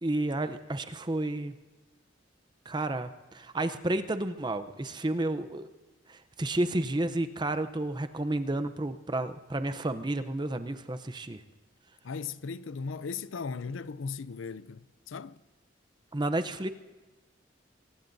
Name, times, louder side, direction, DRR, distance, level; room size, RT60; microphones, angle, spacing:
voice 1, 0.0-1.5 2.7-5.7 6.1-11.4 16.1-16.7, right 2 dB, 25° right, 0.7 m, -31 dB
voice 2, 12.0-15.4, left 5 dB, 85° left, 0.5 m, -37 dB
24.5 x 19.0 x 2.7 m
head